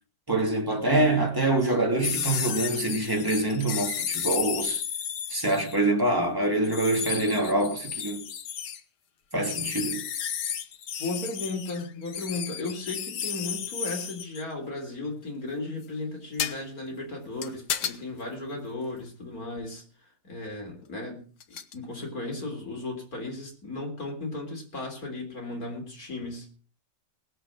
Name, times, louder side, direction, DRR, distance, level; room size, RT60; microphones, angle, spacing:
voice 1, 0.3-4.8 5.3-8.2 9.3-10.0, right 2 dB, 10° right, 2.7 m, -25 dB
sound 1, 2.0-5.8 6.6-8.8 9.5-14.4 16.4-16.6 17.4-18.0 19.6-19.7 21.4-21.7, left 8 dB, 80° left, 1.6 m, -33 dB
voice 2, 11.0-19.8 20.2-21.2 21.7-26.5, left 2 dB, 60° left, 4.2 m, -35 dB
19.5 x 7.7 x 6.0 m
omnidirectional pair, 1.8 m